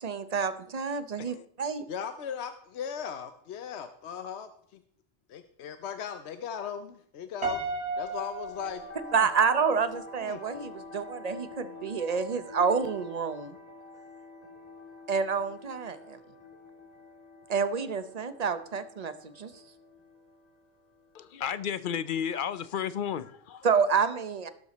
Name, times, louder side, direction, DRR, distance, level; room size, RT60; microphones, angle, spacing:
voice 1, 0.0-1.8 9.1-13.6 15.1-16.2 17.5-19.5 23.6-24.5, right 5 dB, 40° right, 12 dB, 0.8 m, -28 dB
voice 2, 1.9-4.8 5.3-7.6 8.0-9.3 10.2-10.4, left 7 dB, 75° left, 9 dB, 1.0 m, -38 dB
Piano, 7.4-9.7, right 2 dB, 75° right, 2.2 m, -34 dB
sound 1, 8.4-22.5, left 2 dB, 35° left, 1.9 m, -48 dB
voice 3, 21.1-23.7, left 8 dB, 55° left, 15 dB, 0.8 m, -33 dB
17.5 x 6.8 x 4.1 m, 0.64 s
omnidirectional pair, 1.1 m